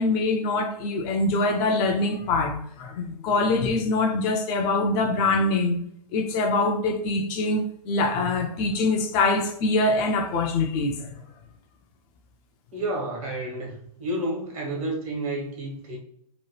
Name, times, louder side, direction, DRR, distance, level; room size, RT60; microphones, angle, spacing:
voice 1, 0.0-5.8 6.1-11.2, left 2 dB, 30° left, 0.4 m, -24 dB
voice 2, 12.7-16.0, right 1 dB, 60° right, 1.3 m, -30 dB
2.9 x 2.1 x 3.0 m
hypercardioid pair, 115°, 20 cm